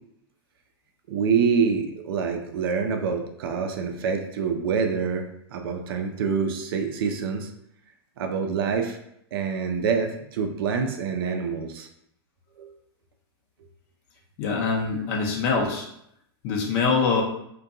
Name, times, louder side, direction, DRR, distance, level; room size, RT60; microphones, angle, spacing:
voice 1, 1.1-5.2 5.5-7.5 8.2-9.0 9.3-11.9 12.6-12.7 15.1-15.2, right 6 dB, 60° right, 5 dB, 0.4 m, -26 dB
voice 2, 14.4-15.9 16.4-17.2, left 4 dB, 45° left, 0 dB, 0.6 m, -24 dB
2.5 x 2.2 x 2.5 m, 0.74 s
hypercardioid pair, 105°, 13 cm